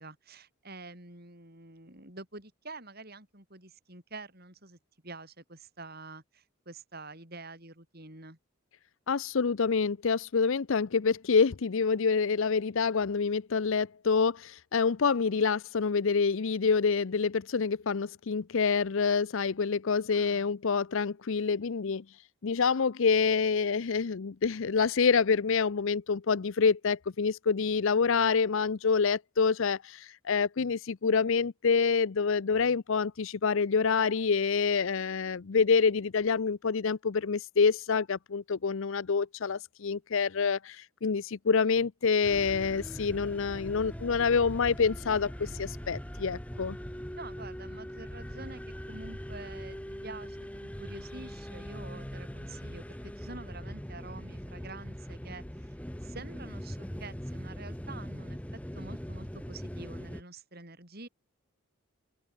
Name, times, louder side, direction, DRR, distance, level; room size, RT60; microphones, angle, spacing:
voice 1, 0.0-4.8 5.0-8.4 20.1-20.6 47.1-48.6 48.9-55.7 56.0-58.4 58.7-61.1, right 3 dB, 45° right, 6.1 m, -47 dB
voice 2, 9.1-22.0 22.4-46.8, left 5 dB, 65° left, 0.5 m, -27 dB
sound 1, 42.2-60.2, equal, 5° left, 1.4 m, -41 dB
open air
head